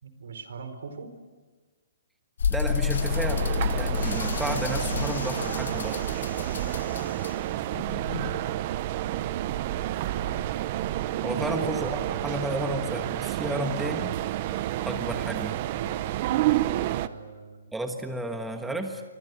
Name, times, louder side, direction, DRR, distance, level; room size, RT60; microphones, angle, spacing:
voice 1, 0.0-1.1 7.9-9.0 10.1-10.5 11.3-11.7 15.7-16.0 16.8-17.7, right 5 dB, 75° right, 9 dB, 4.5 m, -41 dB
sound 1, 2.4-8.5, left 7 dB, 75° left, 0.7 m, -30 dB
voice 2, 2.5-6.0 11.2-14.1 14.8-15.6 17.7-19.0, right 1 dB, 5° right, 5 dB, 1.3 m, -32 dB
sound 2, 2.6-17.1, right 14 dB, 35° right, 0.8 m, -30 dB
27.0 x 24.5 x 8.3 m, 1.3 s
hypercardioid pair, 165°, 0 cm